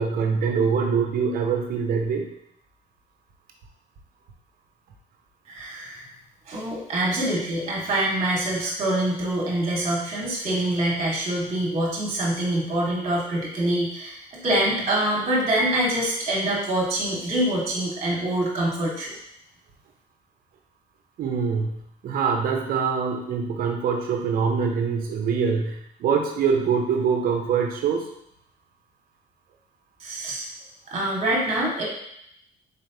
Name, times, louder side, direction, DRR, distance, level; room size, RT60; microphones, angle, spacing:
voice 1, 0.0-2.3 21.2-28.1, right 6 dB, 60° right, 3 dB, 0.7 m, -24 dB
voice 2, 5.5-6.1 6.5-19.1 30.0-30.5 30.9-31.8, right 1 dB, 40° right, -3 dB, 1.3 m, -25 dB
4.2 x 3.3 x 2.8 m, 0.75 s
cardioid pair, 110°, 17 cm